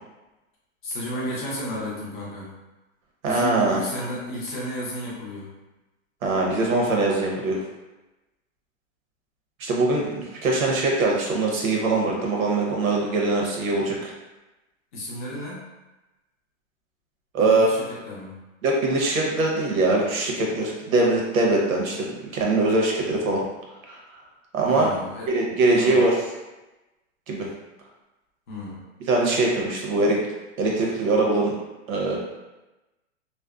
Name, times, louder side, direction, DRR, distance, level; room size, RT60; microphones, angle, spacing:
voice 1, 0.8-2.5 3.2-5.5 14.9-15.6 17.4-18.4 24.6-25.3 25.7-26.1 28.5-28.8, equal, 40° left, -5 dB, 0.6 m, -33 dB
voice 2, 3.2-3.8 6.2-7.6 9.6-14.1 17.3-17.7 18.6-23.4 23.9-24.0 24.5-24.9 25.3-26.2 27.3-27.5 29.1-30.2 30.6-31.5 31.9-32.2, right 2 dB, 85° right, -1 dB, 0.9 m, -22 dB
2.6 x 2.0 x 2.3 m, 1.0 s
supercardioid pair, 175°, 40 cm